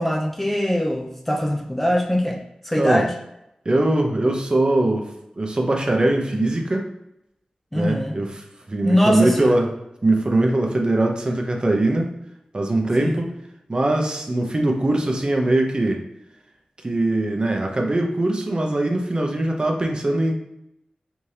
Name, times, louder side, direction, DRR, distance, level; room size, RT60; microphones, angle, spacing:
voice 1, 0.0-3.1 7.7-8.2 8.8-9.6 13.0-13.2, equal, 10° left, 2 dB, 0.4 m, -22 dB
voice 2, 3.7-5.1 5.4-6.9 7.7-9.7 10.0-12.1 12.5-13.3 13.7-16.0 16.8-20.3, right 2 dB, 40° right, 2 dB, 0.7 m, -21 dB
3.4 x 3.2 x 2.8 m, 0.84 s
wide cardioid pair, 60°, 2 cm